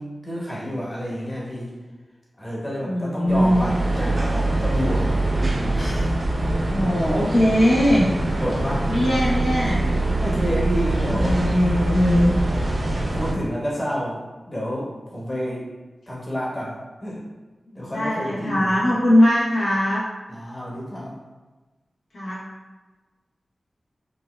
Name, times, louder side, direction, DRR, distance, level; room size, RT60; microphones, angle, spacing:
voice 1, 0.0-1.7 2.4-5.1 5.7-6.1 8.4-9.0 9.9-11.4 12.5-15.6 16.1-16.7 17.0-17.2 17.8-18.8 20.3-21.2, equal, 30° left, -5 dB, 1.1 m, -29 dB
voice 2, 2.8-3.7 6.7-8.1 8.9-9.8 11.0-12.3 17.7-20.1 22.1-22.4, equal, 80° left, -7 dB, 0.9 m, -20 dB
sound 1, 3.3-13.3, right 2 dB, 65° right, 0.7 m, -24 dB
4.2 x 2.5 x 2.2 m, 1.2 s
cardioid pair, 55°, 0 cm